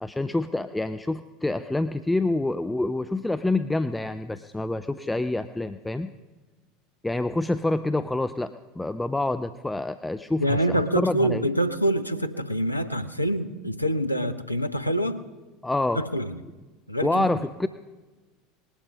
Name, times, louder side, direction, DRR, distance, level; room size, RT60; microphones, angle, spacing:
voice 1, 0.0-6.1 7.0-11.4 15.6-16.0 17.0-17.7, left 2 dB, 10° left, 11 dB, 0.5 m, -27 dB
voice 2, 10.4-15.2 15.9-16.4 16.9-17.3, right 1 dB, 90° left, 10 dB, 0.7 m, -26 dB
19.5 x 11.5 x 5.5 m, 1.3 s
figure-of-eight pair, 75°, 0 cm